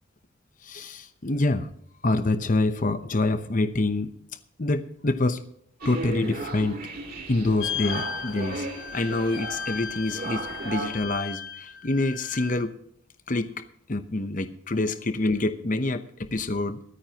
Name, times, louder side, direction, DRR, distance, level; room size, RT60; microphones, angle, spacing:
voice 1, 0.6-1.7 2.0-4.1 4.6-5.4 5.8-6.8 7.3-8.7 8.9-12.8 13.3-13.5 13.9-16.8, left 2 dB, 40° left, 10 dB, 0.8 m, -26 dB
sound 1, 5.8-10.9, right 2 dB, 45° right, 2.1 m, -35 dB
sound 2, 7.6-12.6, left 7 dB, 70° left, 1.2 m, -36 dB
22.5 x 9.5 x 2.9 m, 0.70 s
head